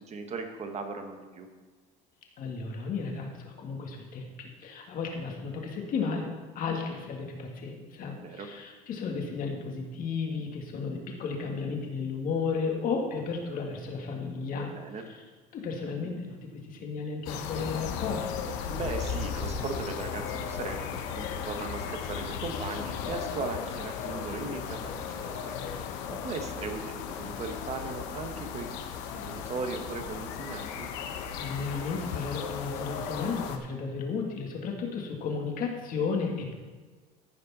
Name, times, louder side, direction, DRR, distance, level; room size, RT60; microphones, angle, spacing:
voice 1, 0.0-1.5 8.1-8.5 14.6-15.0 18.7-25.6 26.1-28.7 29.1-30.9, right 4 dB, 35° right, 5 dB, 1.3 m, -38 dB
voice 2, 2.4-6.3 6.6-14.7 15.5-16.4 16.7-18.3 31.3-36.5, left 5 dB, 50° left, 1 dB, 2.0 m, -33 dB
sound 1, 17.3-33.6, left 7 dB, 80° left, 1.0 m, -36 dB
14.5 x 5.3 x 4.2 m, 1.4 s
supercardioid pair, 115°, 18 cm